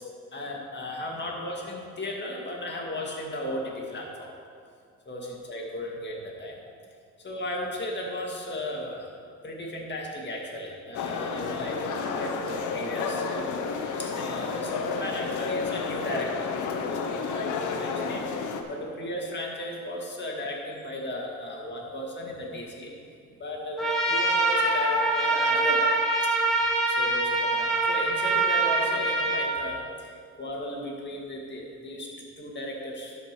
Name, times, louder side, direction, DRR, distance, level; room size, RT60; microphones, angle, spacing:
voice 1, 0.3-4.3 5.1-6.6 7.2-9.1 9.4-16.5 16.9-22.9 23.4-25.9 26.9-33.2, left 1 dB, 35° left, -1 dB, 2.1 m, -35 dB
sound 1, 10.9-18.6, left 5 dB, 75° left, 0.9 m, -31 dB
Trumpet, 23.8-29.5, right 2 dB, ahead, 2.1 m, -24 dB
11.5 x 5.0 x 6.1 m, 2.3 s
cardioid pair, 90°, 30 cm